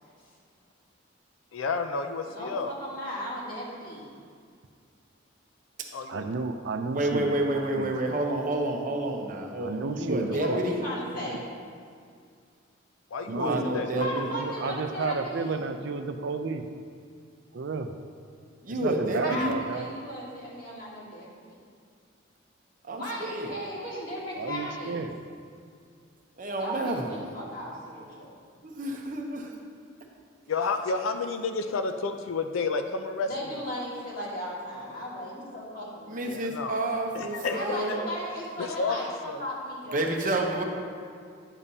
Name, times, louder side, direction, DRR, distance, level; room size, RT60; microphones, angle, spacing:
voice 1, 1.5-2.7 5.9-6.2 13.1-13.9 30.5-33.3 36.3-36.8 37.1-37.6 38.6-39.0 39.3-39.4, left 4 dB, 85° left, 7 dB, 0.5 m, -30 dB
voice 2, 2.2-4.0 10.2-11.5 14.0-15.7 19.1-21.6 23.0-25.1 26.6-28.3 33.2-36.4 37.5-40.1, equal, 45° left, -6 dB, 1.8 m, -36 dB
voice 3, 6.1-7.3 7.5-7.9 9.6-10.6 11.3-11.4 13.3-16.7 17.5-17.9 18.7-19.9 24.3-25.2, right 4 dB, 60° right, 7 dB, 0.4 m, -32 dB
voice 4, 6.9-10.8 13.3-14.4 18.6-19.5 22.8-23.5 26.4-27.1 28.6-29.5 36.1-38.0 39.9-40.6, right 1 dB, 40° right, 1 dB, 0.8 m, -29 dB
9.9 x 7.0 x 2.7 m, 2.2 s
head